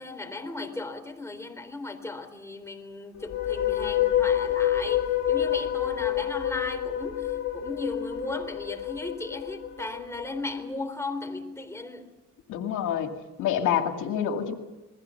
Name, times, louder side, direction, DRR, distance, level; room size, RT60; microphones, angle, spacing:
voice 1, 0.0-12.1, left 2 dB, 10° left, 3.8 m, -36 dB
sound 1, 3.2-10.5, left 11 dB, 60° left, 2.6 m, -28 dB
voice 2, 12.5-14.5, left 9 dB, 85° left, 2.4 m, -27 dB
28.0 x 21.5 x 5.9 m
cardioid pair, 90°, 30 cm